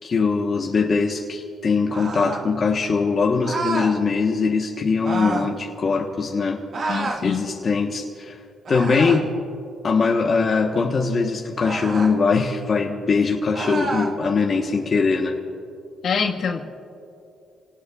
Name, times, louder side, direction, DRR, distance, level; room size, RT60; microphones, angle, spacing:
voice 1, 0.0-6.6 7.2-8.4 8.7-9.3 9.8-15.4, left 4 dB, 45° left, 0 dB, 1.2 m, -21 dB
sound 1, 1.9-2.5 3.4-4.0 5.0-5.5 6.7-7.2 8.6-9.3 11.6-12.2 13.5-14.1, right 3 dB, 50° right, 1.9 m, -28 dB
voice 2, 6.9-7.5 16.0-16.6, left 6 dB, 65° left, 0 dB, 1.6 m, -25 dB
29.0 x 18.5 x 2.4 m, 2.6 s
cardioid pair, 90°, 0 cm